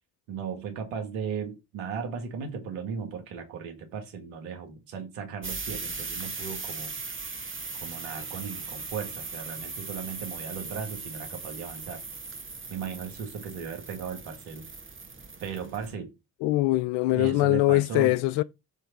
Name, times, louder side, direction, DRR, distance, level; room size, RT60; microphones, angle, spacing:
voice 1, 0.3-7.3 7.8-12.0 12.7-14.7 15.4-16.1 17.1-18.1, right 6 dB, 85° right, 1.7 m, -36 dB
sound 1, 5.4-15.9, right 4 dB, 30° right, 1.5 m, -39 dB
voice 2, 16.4-18.4, left 18 dB, 80° left, 0.5 m, -22 dB
9.1 x 3.3 x 5.9 m
hypercardioid pair, 40°, 42 cm